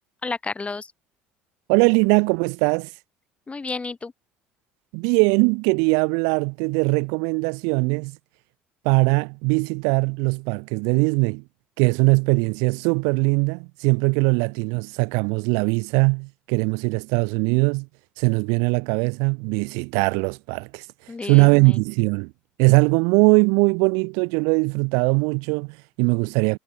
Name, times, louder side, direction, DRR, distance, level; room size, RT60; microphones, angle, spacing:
voice 1, 0.2-0.9 3.5-4.1 21.1-21.8, left 4 dB, 20° left, 1.0 m, -31 dB
voice 2, 1.7-2.9 4.9-8.2 8.8-11.4 11.8-17.9 18.2-20.8 21.2-22.3 22.6-26.6, right 37 dB, 70° right, 1.0 m, -21 dB
hypercardioid pair, 65°, 6 cm